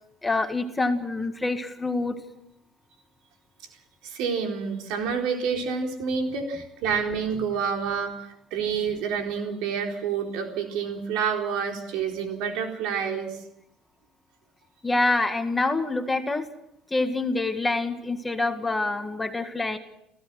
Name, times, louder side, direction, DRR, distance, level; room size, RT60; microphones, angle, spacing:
voice 1, 0.2-2.2 14.8-16.5 16.9-19.8, left 2 dB, 10° left, 6 dB, 1.8 m, -26 dB
voice 2, 4.0-13.4, right 6 dB, 80° right, 2 dB, 4.1 m, -28 dB
29.0 x 16.0 x 6.3 m, 0.78 s
cardioid pair, 150°, 0 cm